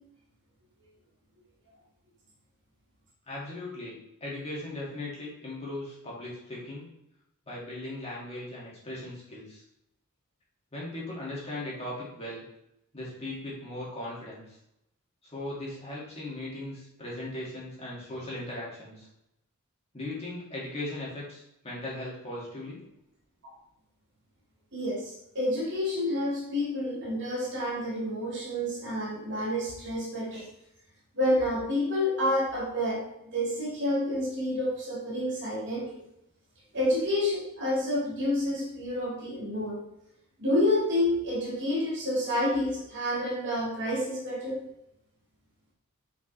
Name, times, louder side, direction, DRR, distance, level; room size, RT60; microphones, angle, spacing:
voice 1, 3.3-6.9 7.5-9.6 10.7-12.4 12.9-14.6 15.2-19.1 19.9-22.8, left 1 dB, 30° left, -6 dB, 2.3 m, -38 dB
voice 2, 24.7-30.5 31.1-33.0 33.3-35.9 36.7-39.8 40.4-44.6, left 1 dB, 55° right, -5 dB, 2.2 m, -29 dB
5.4 x 5.3 x 3.4 m, 0.81 s
head